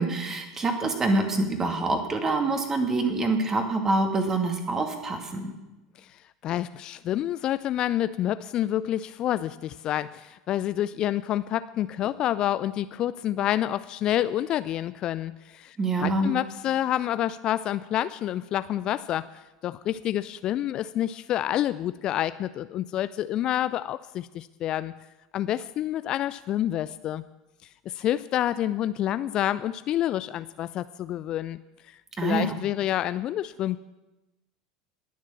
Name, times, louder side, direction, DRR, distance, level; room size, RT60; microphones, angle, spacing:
voice 1, 0.0-5.5 15.8-16.3 32.2-32.5, right 2 dB, 20° right, 4 dB, 2.5 m, -26 dB
voice 2, 6.0-15.8 16.0-24.9 25.3-27.2 27.9-31.6 31.9-33.8, left 12 dB, 40° left, 15 dB, 0.4 m, -28 dB
20.0 x 7.3 x 7.3 m, 1.0 s
figure-of-eight pair, 75°, 2 cm